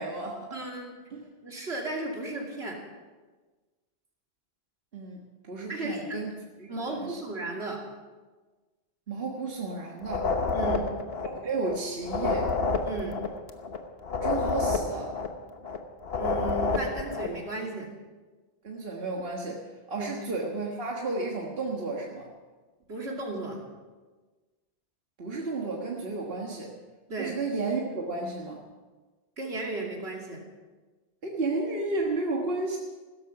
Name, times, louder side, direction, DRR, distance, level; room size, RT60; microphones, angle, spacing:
voice 1, 0.0-0.6 1.1-1.3 4.9-5.2 5.4-6.3 6.6-7.2 9.1-10.3 11.2-12.5 14.2-15.1 18.6-22.3 25.2-26.7 27.2-28.6 31.2-32.8, right 3 dB, 65° right, -1 dB, 1.7 m, -32 dB
voice 2, 0.5-0.9 1.4-2.8 5.7-6.2 6.7-7.8 10.5-10.9 12.9-13.2 16.1-17.9 19.9-20.1 22.9-23.6 27.1-27.4 29.4-30.4, right 2 dB, 85° right, 0 dB, 2.9 m, -34 dB
sound 1, 10.0-11.8 12.0-15.8 16.0-17.4, left 3 dB, 70° left, 1.4 m, -29 dB
16.0 x 13.0 x 5.8 m, 1.3 s
omnidirectional pair, 1.1 m